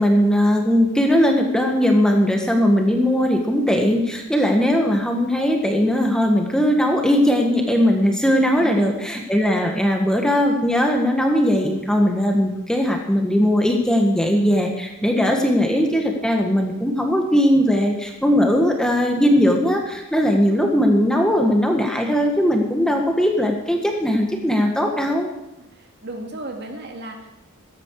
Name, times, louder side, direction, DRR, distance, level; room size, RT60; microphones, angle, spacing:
voice 1, 0.0-25.3, equal, 5° left, 2 dB, 1.7 m, -19 dB
voice 2, 8.5-9.2 25.6-27.4, right 1 dB, 50° right, 3 dB, 2.3 m, -35 dB
16.5 x 13.5 x 4.9 m, 0.94 s
head